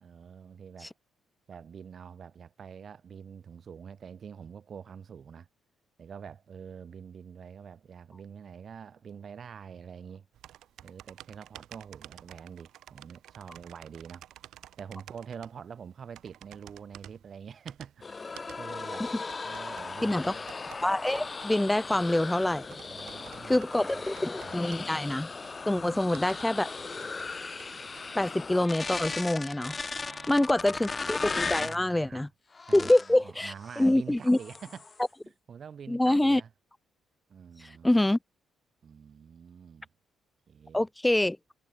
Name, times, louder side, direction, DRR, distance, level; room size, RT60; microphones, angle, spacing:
voice 1, 0.0-0.9 1.5-5.5 6.0-10.3 10.8-14.3 14.8-19.1 19.4-20.4 22.9-23.9 24.4-24.6 25.8-26.1 30.0-30.9 31.6-32.3 32.7-32.9 33.2-36.5 37.3-38.0 38.8-39.9 40.5-40.8, right 7 dB, 50° right, 1.1 m, -46 dB
sound 1, 10.3-28.1, right 12 dB, 80° right, 2.5 m, -52 dB
sound 2, 18.0-31.8 32.5-33.2 33.6-33.9 34.3-35.0, left 4 dB, 30° left, 1.5 m, -37 dB
voice 2, 20.0-20.3 20.8-22.8 23.4-25.3 25.7-26.8 28.1-29.8 30.3-32.3 32.7-34.4 35.9-36.4 37.6-38.2 40.7-41.4, left 1 dB, 10° left, 0.5 m, -26 dB
cardioid pair, 90°, 0 cm